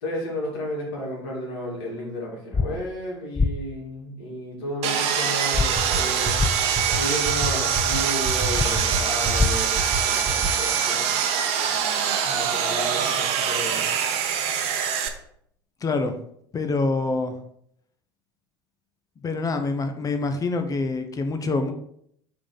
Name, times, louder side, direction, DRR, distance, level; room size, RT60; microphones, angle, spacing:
voice 1, 0.0-6.4 6.9-11.1 12.2-13.8, left 1 dB, 65° left, -3 dB, 2.3 m, -32 dB
sound 1, 2.5-2.7 3.4-3.5 5.5-5.7 6.4-6.5 8.5-8.7 9.3-9.5, left 4 dB, 10° left, 0.4 m, -21 dB
Sawing, 4.8-15.1, right 8 dB, 55° right, 0.8 m, -24 dB
sound 2, 5.7-6.0 6.2-6.5 6.7-7.0 7.2-7.5 7.7-8.0 8.2-8.5 8.7-9.0 9.2-9.5 9.7-10.0 10.2-10.5, right 5 dB, 20° right, 1.8 m, -27 dB
voice 2, 15.8-16.2 16.5-17.3 19.2-21.7, left 3 dB, 30° left, 8 dB, 0.7 m, -25 dB
4.8 x 3.8 x 5.5 m, 0.69 s
figure-of-eight pair, 70°, 13 cm